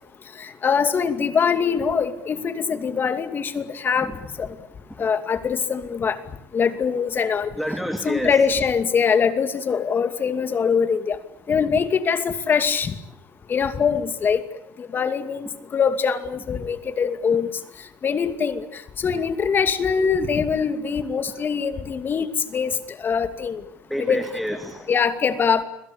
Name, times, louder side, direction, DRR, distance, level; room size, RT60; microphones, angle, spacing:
voice 1, 0.6-4.1 4.4-4.5 5.0-6.2 6.5-7.5 8.0-11.2 11.5-12.9 13.5-14.4 14.8-17.5 18.0-18.7 19.0-22.3 22.5-22.8 23.0-23.6 24.0-24.3 24.9-25.6, left 6 dB, 35° left, 10 dB, 2.5 m, -22 dB
voice 2, 7.6-8.4 23.9-24.9, equal, ahead, 7 dB, 2.5 m, -28 dB
30.0 x 22.5 x 8.5 m, 0.73 s
cardioid pair, 120°, 6 cm